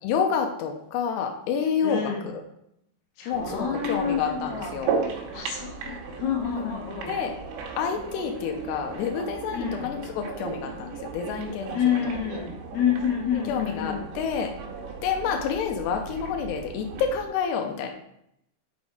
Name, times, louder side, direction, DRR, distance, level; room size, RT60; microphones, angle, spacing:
voice 1, 0.0-2.4 3.3-4.9 6.6-7.3 7.8-12.0 13.3-14.5 15.0-17.9, left 7 dB, 90° left, 3 dB, 2.4 m, -29 dB
voice 2, 1.8-2.2 3.2-4.7 5.3-7.1 9.5-10.0 11.7-14.0, left 8 dB, 65° left, -2 dB, 3.1 m, -28 dB
sound 1, 3.3-17.3, right 5 dB, 75° right, 2.9 m, -36 dB
6.2 x 6.0 x 3.6 m, 0.78 s
omnidirectional pair, 5.6 m